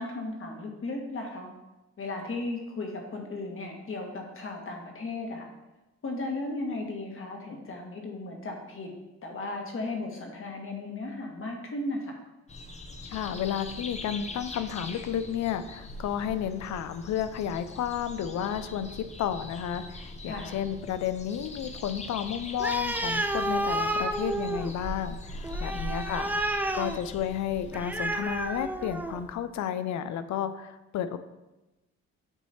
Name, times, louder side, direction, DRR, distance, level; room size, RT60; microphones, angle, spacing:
voice 1, 0.0-1.5 2.0-5.4 6.0-8.9 9.2-12.2 20.3-20.5 25.7-26.4, left 2 dB, 45° left, 1 dB, 1.5 m, -36 dB
sound 1, 12.5-28.0, left 1 dB, 20° left, 0.7 m, -42 dB
voice 2, 13.1-31.2, left 9 dB, 65° left, 11 dB, 0.6 m, -32 dB
Animal, 22.6-29.3, right 1 dB, 5° right, 0.4 m, -31 dB
8.8 x 3.1 x 4.2 m, 1.0 s
cardioid pair, 90°, 30 cm